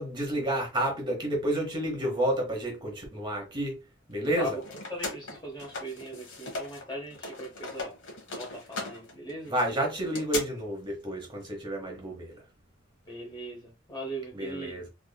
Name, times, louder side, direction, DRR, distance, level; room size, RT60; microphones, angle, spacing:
voice 1, 0.0-3.8 4.1-4.5 9.5-12.4 14.4-14.9, right 1 dB, 25° right, 0.9 m, -30 dB
sound 1, 4.2-6.8 7.1-10.4, left 3 dB, 65° left, 1.2 m, -38 dB
voice 2, 4.4-8.0 8.3-9.5 13.0-14.8, right 1 dB, 25° left, 1.2 m, -39 dB
3.4 x 2.9 x 2.2 m
head